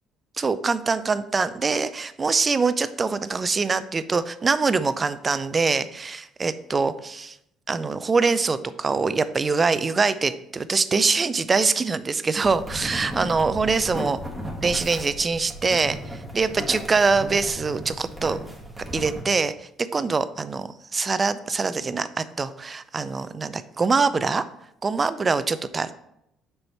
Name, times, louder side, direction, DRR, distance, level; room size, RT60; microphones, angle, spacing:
voice 1, 0.4-7.4 7.7-14.2 14.6-18.4 18.9-24.4 24.8-25.9, right 4 dB, 30° right, 14 dB, 0.4 m, -24 dB
sound 1, 12.4-19.2, equal, 5° right, 1.7 m, -35 dB
6.4 x 4.6 x 4.2 m, 0.79 s
supercardioid pair, 85°, 0 cm